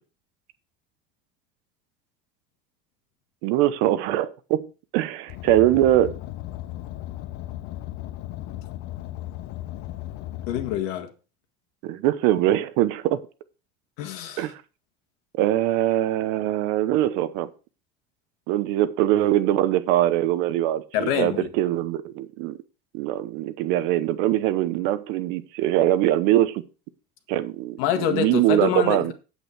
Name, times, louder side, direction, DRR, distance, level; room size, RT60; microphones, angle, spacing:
voice 1, 3.4-6.2 11.8-13.2 14.4-14.6 15.4-17.5 18.5-22.6 22.9-26.6 27.3-29.1, right 13 dB, 60° right, 0.9 m, -22 dB
Car, 5.3-10.8, left 15 dB, 55° left, 0.8 m, -36 dB
voice 2, 10.5-11.1 14.0-14.5 20.9-21.5 27.8-29.1, left 9 dB, 70° left, 1.8 m, -26 dB
8.5 x 8.3 x 4.5 m
cardioid pair, 170°, 20 cm